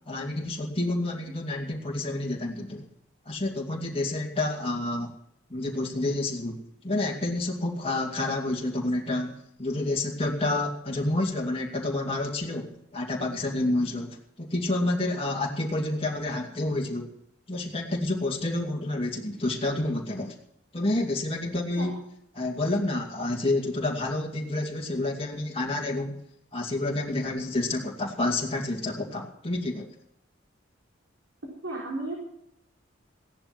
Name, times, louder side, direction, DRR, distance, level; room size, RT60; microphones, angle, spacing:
voice 1, 0.1-2.9 3.3-5.1 5.5-17.1 17.5-20.3 20.7-21.9 22.3-26.2 26.5-29.9, left 2 dB, 30° left, -1 dB, 2.4 m, -29 dB
voice 2, 31.6-32.1, right 2 dB, 75° right, -3 dB, 3.8 m, -33 dB
16.5 x 11.0 x 6.0 m, 0.72 s
head